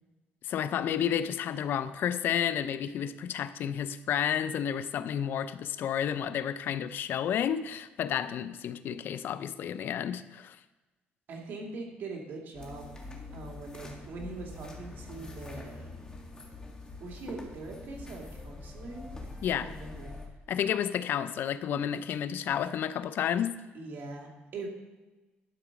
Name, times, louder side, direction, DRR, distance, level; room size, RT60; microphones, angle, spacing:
voice 1, 0.4-10.6 19.4-19.7 20.5-23.6, left 9 dB, 65° left, 0.5 m, -31 dB
voice 2, 11.3-12.9 13.3-15.9 17.0-19.0 19.5-20.2 23.7-24.7, right 3 dB, 60° right, 2.4 m, -42 dB
sound 1, 12.5-20.3, left 2 dB, 20° left, 1.9 m, -44 dB
11.5 x 4.9 x 5.9 m
cardioid pair, 110°, 4 cm